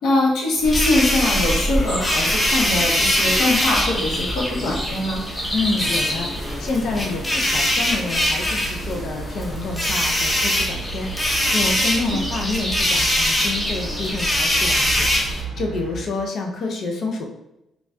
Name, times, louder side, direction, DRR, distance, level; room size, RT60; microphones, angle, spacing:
voice 1, 0.0-5.2 12.0-12.2, left 2 dB, 75° left, -3 dB, 1.0 m, -22 dB
sound 1, 0.6-15.4, left 1 dB, 20° left, 0.7 m, -22 dB
sound 2, 0.6-16.0, right 8 dB, 60° right, 0.5 m, -37 dB
voice 2, 5.5-17.3, left 3 dB, 60° left, 2 dB, 0.5 m, -28 dB
4.0 x 2.3 x 2.3 m, 0.87 s
cardioid pair, 90°, 0 cm